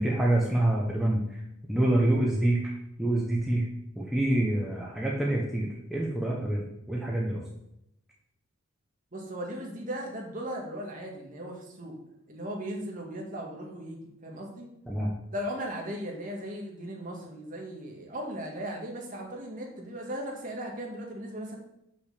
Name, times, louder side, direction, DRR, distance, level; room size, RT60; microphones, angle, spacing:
voice 1, 0.0-1.4 1.7-2.7 3.0-3.6 4.0-7.4 14.9-15.1, right 1 dB, ahead, -4 dB, 1.1 m, -26 dB
voice 2, 9.1-12.0 12.3-14.7 15.3-21.6, equal, 40° right, 0 dB, 1.9 m, -37 dB
6.5 x 6.0 x 6.7 m, 0.80 s
head